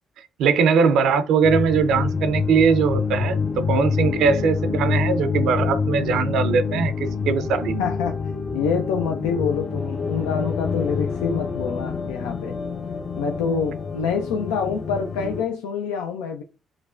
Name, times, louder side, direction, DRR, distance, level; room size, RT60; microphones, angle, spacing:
voice 1, 0.4-7.8, right 5 dB, 70° right, 0.5 m, -21 dB
sound 1, 1.4-15.4, left 5 dB, 40° left, 0.6 m, -26 dB
voice 2, 7.8-8.2 8.5-12.6 13.2-16.4, left 6 dB, 80° left, 0.3 m, -26 dB
4.9 x 2.1 x 2.4 m
hypercardioid pair, 50°, 0 cm